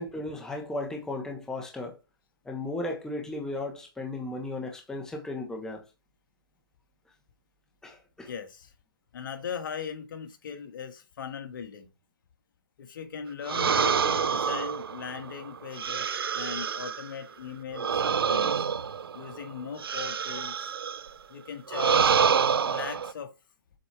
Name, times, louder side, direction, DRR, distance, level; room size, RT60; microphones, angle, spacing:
voice 1, 0.0-2.0 2.4-5.8 7.8-8.3, left 2 dB, 5° left, 1.3 m, -35 dB
voice 2, 8.3-8.7 9.1-11.9 12.8-18.6 19.1-20.7 21.3-22.1 22.6-23.3, left 7 dB, 65° left, 1.7 m, -39 dB
sound 1, 13.5-17.1 17.7-21.1 21.7-23.1, right 7 dB, 85° right, 0.7 m, -27 dB
7.6 x 4.5 x 3.4 m
hypercardioid pair, 150°, 12 cm